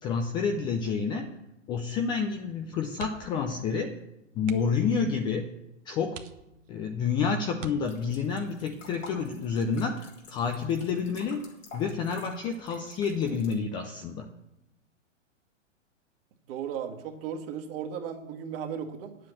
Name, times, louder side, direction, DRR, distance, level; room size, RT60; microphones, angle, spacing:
voice 1, 0.0-1.3 1.7-3.9 4.3-5.5 5.9-6.2 6.7-14.3, left 5 dB, 15° left, 4 dB, 0.3 m, -29 dB
sound 1, 2.9-3.5 3.8-3.9 4.4-4.9 5.5-5.6 6.1-6.9 7.5-8.3 9.9-10.2 10.6-10.7, right 6 dB, 75° right, 1.2 m, -45 dB
sound 2, 7.8-13.5, left 3 dB, 80° left, 3.8 m, -50 dB
voice 2, 16.5-19.2, right 8 dB, 50° right, 4 dB, 1.7 m, -36 dB
9.3 x 7.7 x 7.4 m, 0.89 s
hypercardioid pair, 115°, 38 cm